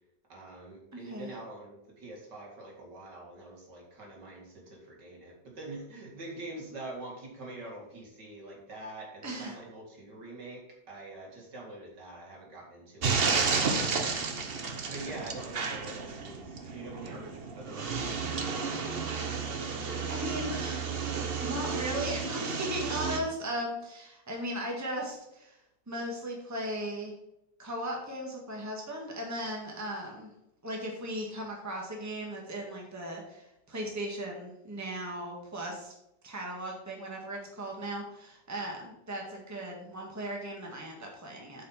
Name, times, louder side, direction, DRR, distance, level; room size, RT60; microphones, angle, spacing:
voice 1, 0.3-14.1 14.9-19.6, right 2 dB, 65° right, -1 dB, 2.8 m, -45 dB
voice 2, 0.9-1.3 9.2-9.5 20.1-21.1 21.4-25.5 25.9-27.1 27.6-30.3 30.6-35.9 36.2-41.7, right 1 dB, 10° right, 0 dB, 1.7 m, -37 dB
sound 1, 13.0-23.2, right 5 dB, 45° right, 0.8 m, -32 dB
8.5 x 5.4 x 5.7 m, 0.85 s
omnidirectional pair, 2.0 m